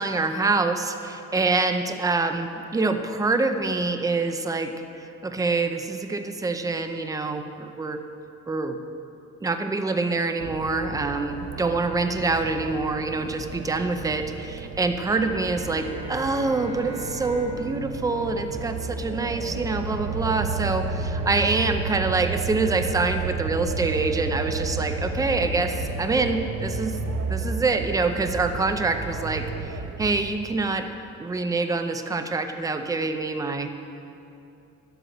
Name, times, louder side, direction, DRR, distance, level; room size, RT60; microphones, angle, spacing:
voice 1, 0.0-4.7 5.0-8.0 8.5-8.8 9.4-27.0 27.3-30.9 31.2-33.9, right 3 dB, 10° right, 7 dB, 0.5 m, -26 dB
sound 1, 10.4-30.3, right 4 dB, 65° right, 1.0 m, -32 dB
Bowed string instrument, 15.1-19.5, right 1 dB, 40° right, 1.2 m, -40 dB
11.5 x 7.9 x 7.8 m, 2.7 s
cardioid pair, 160°, 31 cm